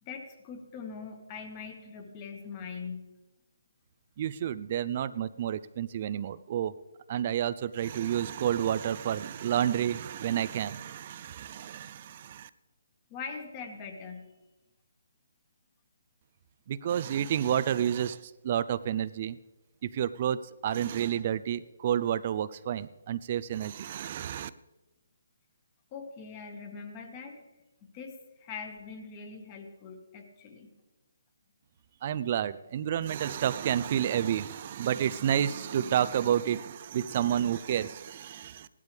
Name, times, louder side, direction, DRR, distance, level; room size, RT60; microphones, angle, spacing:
voice 1, 0.0-3.1 13.1-14.3 25.9-27.4 27.9-30.7, left 5 dB, 25° left, 4 dB, 1.7 m, -42 dB
voice 2, 4.2-6.7 7.1-12.5 16.7-19.4 19.8-24.5 32.0-38.7, right 10 dB, 40° right, 16 dB, 0.5 m, -30 dB
17.5 x 12.0 x 3.4 m, 1.0 s
hypercardioid pair, 160°, 0 cm